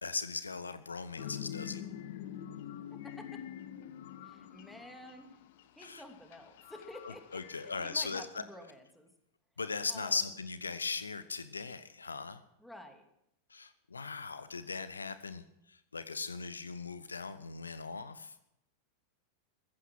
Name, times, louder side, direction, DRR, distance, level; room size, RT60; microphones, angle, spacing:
voice 1, 0.0-1.8 5.8-6.0 7.3-8.3 9.6-12.4 13.5-18.3, left 4 dB, 75° left, 13 dB, 0.8 m, -38 dB
sound 1, 1.2-8.1, left 10 dB, 55° left, 1.0 m, -46 dB
voice 2, 4.2-5.4 5.7-9.1 9.9-10.2 12.6-13.0, left 1 dB, 5° left, 4 dB, 2.7 m, -50 dB
15.0 x 14.5 x 6.2 m, 0.80 s
figure-of-eight pair, 90°, 0 cm